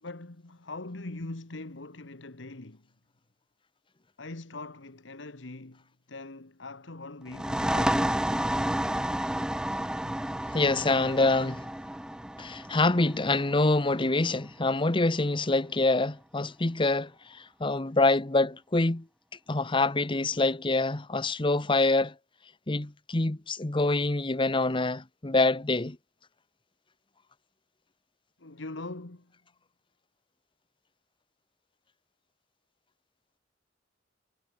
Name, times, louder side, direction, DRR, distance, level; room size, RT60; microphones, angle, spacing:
voice 1, 0.0-2.8 4.2-8.1 28.4-29.3, left 2 dB, 70° left, 1.6 m, -42 dB
sound 1, 7.3-14.7, right 1 dB, 5° right, 0.6 m, -31 dB
voice 2, 10.5-11.7 12.4-19.0 19.5-22.1 22.7-26.0, left 2 dB, 25° left, 1.0 m, -26 dB
head